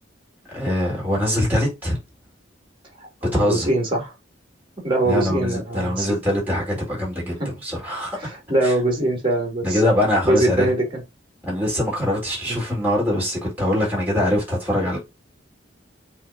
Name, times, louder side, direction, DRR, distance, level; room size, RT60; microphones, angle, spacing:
voice 1, 0.5-2.0 3.3-3.7 5.0-8.2 8.6-8.7 9.6-10.7 11.5-15.0, left 1 dB, 10° right, 4.6 m, -23 dB
voice 2, 3.0-4.1 4.8-6.1 7.4-7.5 8.2-9.8 10.2-11.0 12.5-12.6, right 1 dB, 25° right, 3.3 m, -22 dB
9.0 x 3.7 x 2.9 m
head